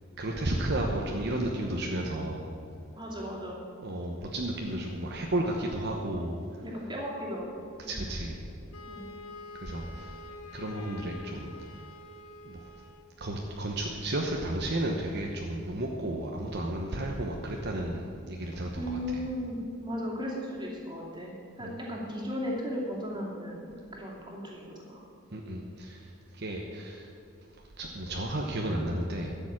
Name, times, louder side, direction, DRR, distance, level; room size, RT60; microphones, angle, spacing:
voice 1, 0.2-2.5 3.8-6.6 7.9-8.4 9.6-10.2 10.5-11.8 12.4-12.6 13.2-19.2 21.6-21.8 25.3-27.1 27.8-29.3, right 1 dB, 50° right, 0 dB, 1.0 m, -33 dB
voice 2, 3.0-3.6 6.6-8.0 8.9-9.1 18.8-25.0, equal, 20° right, -3 dB, 2.6 m, -36 dB
Wind instrument woodwind instrument, 8.7-13.1, left 2 dB, 90° left, 0.9 m, -46 dB
12.5 x 7.1 x 8.7 m, 2.6 s
head